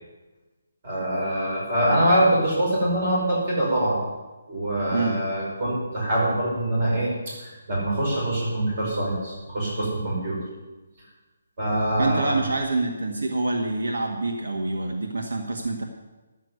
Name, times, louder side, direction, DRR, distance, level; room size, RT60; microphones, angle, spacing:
voice 1, 0.8-4.0 4.5-10.4 11.6-12.4, right 1 dB, 30° right, -5 dB, 5.3 m, -24 dB
voice 2, 12.0-15.8, right 3 dB, 75° right, 1 dB, 1.9 m, -26 dB
12.0 x 7.5 x 9.7 m, 1.2 s
hypercardioid pair, 180°, 0 cm